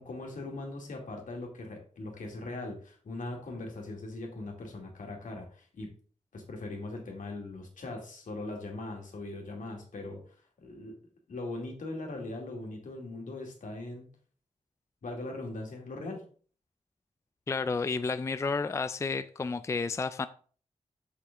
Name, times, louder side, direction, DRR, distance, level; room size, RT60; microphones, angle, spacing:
voice 1, 0.0-5.9 6.3-10.2 10.6-11.0 11.3-14.1 15.0-16.2, left 2 dB, 85° left, 2.4 m, -40 dB
voice 2, 17.5-20.3, left 4 dB, 20° left, 0.3 m, -31 dB
7.2 x 6.8 x 3.6 m
wide cardioid pair, 125°, 13 cm